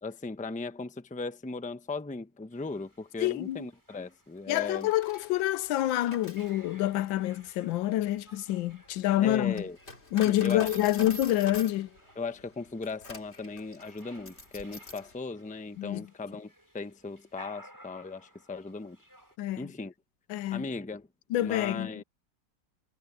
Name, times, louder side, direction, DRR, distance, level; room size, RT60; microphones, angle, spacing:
voice 1, 0.0-4.9 9.2-9.8 10.2-10.7 12.2-19.0 19.6-19.9 20.5-21.1 21.4-22.0, left 3 dB, 5° left, 0.6 m, -37 dB
sound 1, 2.5-19.4, equal, 10° right, 8.0 m, -57 dB
voice 2, 3.2-3.7 4.5-9.6 10.1-11.9 15.8-16.0 19.4-19.7 20.3-20.7 21.3-22.0, left 14 dB, 90° left, 1.4 m, -27 dB
Coin (dropping), 4.6-15.1, left 2 dB, 35° left, 2.9 m, -46 dB
omnidirectional pair, 2.0 m